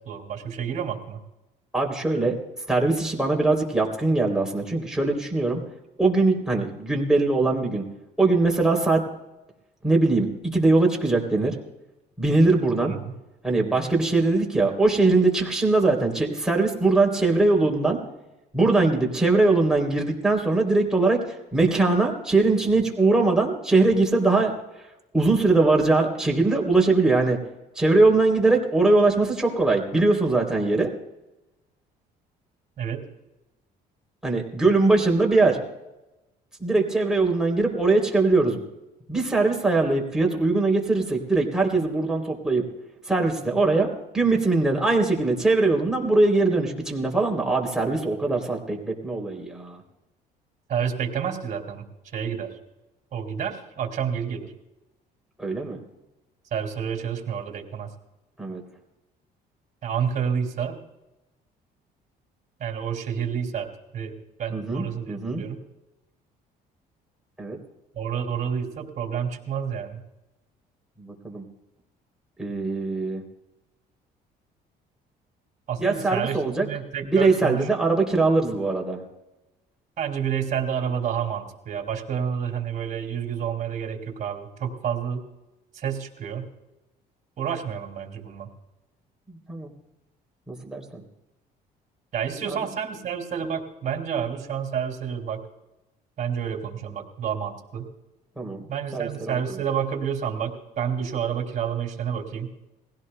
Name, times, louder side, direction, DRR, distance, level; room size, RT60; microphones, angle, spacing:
voice 1, 0.1-1.2 12.9-13.1 32.8-33.1 50.7-51.8 52.1-52.6 53.1-54.5 56.5-57.9 59.8-60.8 62.6-63.7 63.9-64.1 64.4-65.6 67.9-70.0 75.7-77.7 80.0-85.2 85.7-86.5 87.4-88.5 92.1-95.4 96.2-97.9 98.7-102.5, right 8 dB, 50° right, 4 dB, 2.7 m, -29 dB
voice 2, 1.7-2.4 2.7-5.6 6.0-7.8 8.2-9.0 9.8-11.5 12.2-12.9 13.4-18.0 18.5-24.5 25.1-27.4 27.7-30.9 34.2-35.6 36.6-38.6 39.1-42.6 43.0-49.8 55.4-55.8 58.4-58.6 64.5-65.4 67.4-67.6 71.0-71.4 72.4-73.2 75.8-76.7 77.0-79.0 89.3-89.7 90.5-91.0 92.5-92.6 98.4-98.7 98.9-99.6, right 3 dB, 5° right, 0 dB, 3.1 m, -21 dB
21.0 x 16.5 x 2.2 m, 0.96 s
cardioid pair, 110°, 17 cm